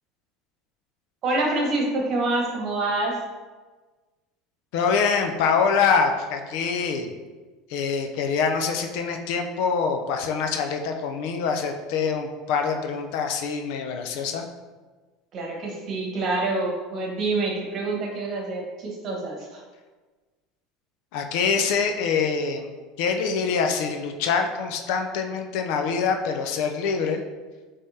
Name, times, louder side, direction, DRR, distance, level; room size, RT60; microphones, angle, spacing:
voice 1, 1.2-3.1 15.3-19.6, right 2 dB, 40° right, -1 dB, 1.2 m, -26 dB
voice 2, 4.7-7.1 7.7-14.5 21.1-22.7 23.0-27.2, left 5 dB, 70° left, 5 dB, 0.5 m, -25 dB
5.2 x 3.4 x 2.8 m, 1.3 s
supercardioid pair, 130°, 0 cm